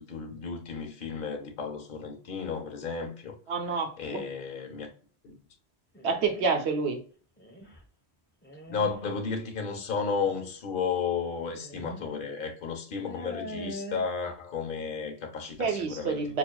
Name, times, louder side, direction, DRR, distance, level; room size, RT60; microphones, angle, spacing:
voice 1, 0.0-3.3 4.0-4.9 5.2-5.4 8.7-16.4, left 5 dB, 55° left, 1.0 m, -33 dB
voice 2, 3.5-4.2 6.0-7.0 15.6-16.4, right 5 dB, 75° right, 1.0 m, -28 dB
sound 1, 6.0-6.7 7.4-7.8 8.4-9.0 10.2-10.3 11.5-12.1 12.4-12.5 13.0-14.0, equal, 15° left, 0.6 m, -42 dB
5.9 x 2.4 x 2.2 m
omnidirectional pair, 1.1 m